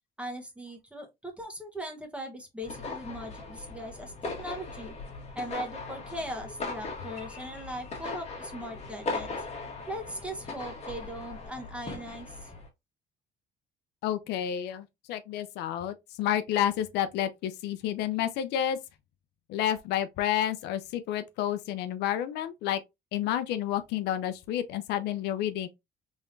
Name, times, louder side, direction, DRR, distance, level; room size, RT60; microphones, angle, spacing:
voice 1, 0.2-4.9 5.3-9.3 9.9-12.5, equal, 5° right, 1.2 m, -39 dB
sound 1, 2.6-12.7, left 3 dB, 40° left, 1.5 m, -39 dB
voice 2, 14.0-18.8 19.5-22.8 23.1-25.7, left 11 dB, 85° left, 0.6 m, -30 dB
3.6 x 3.6 x 2.6 m
cardioid pair, 110°, 17 cm